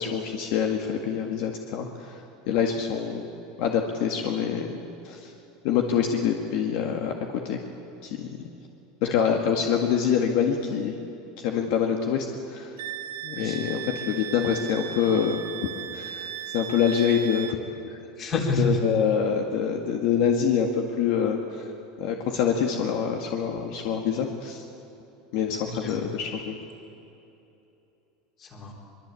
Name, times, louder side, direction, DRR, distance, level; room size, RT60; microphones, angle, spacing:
voice 1, 0.0-2.2 2.5-3.3 3.6-4.8 5.0-5.3 5.6-7.6 8.0-8.5 9.1-10.9 11.4-12.7 13.2-15.4 15.9-17.6 18.6-21.4 22.0-24.6 25.3-26.6, left 7 dB, 55° left, 3 dB, 1.9 m, -25 dB
Wind instrument woodwind instrument, 12.8-17.6, right 9 dB, 85° right, 1.4 m, -36 dB
voice 2, 18.2-18.8 25.6-26.0 28.4-28.7, left 2 dB, 25° left, 2 dB, 3.6 m, -29 dB
23.5 x 23.0 x 8.5 m, 2.9 s
supercardioid pair, 170°, 0 cm